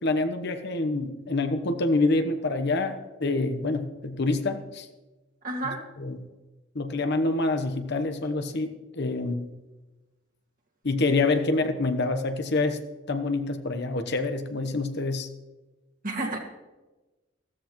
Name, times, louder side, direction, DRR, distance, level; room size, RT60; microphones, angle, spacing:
voice 1, 0.0-4.9 6.0-6.2 6.7-9.5 10.8-12.8 13.1-15.3, left 2 dB, 60° left, 8 dB, 1.0 m, -26 dB
voice 2, 5.4-5.8 16.0-16.4, right 2 dB, 45° right, 0 dB, 2.1 m, -30 dB
15.0 x 14.0 x 3.1 m, 1.1 s
head